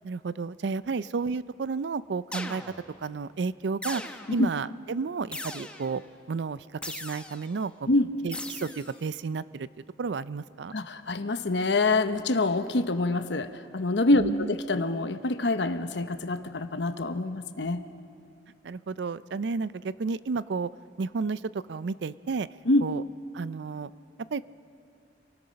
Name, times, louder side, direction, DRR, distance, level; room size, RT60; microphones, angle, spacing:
voice 1, 0.0-2.6 3.0-4.0 4.3-6.0 6.3-7.9 8.2-9.7 10.0-10.7 14.1-14.5 18.6-20.7 21.0-21.4 21.7-22.5 22.8-23.0 23.3-23.9 24.3-24.5, right 4 dB, 75° right, 17 dB, 0.5 m, -32 dB
sound 1, 2.3-3.0 3.8-4.5 5.3-6.0 6.8-7.5 8.3-9.0, left 2 dB, 5° left, 0.9 m, -39 dB
voice 2, 10.7-17.8 22.6-22.9, left 2 dB, 75° left, 10 dB, 1.0 m, -26 dB
27.5 x 18.5 x 5.3 m, 2.8 s
head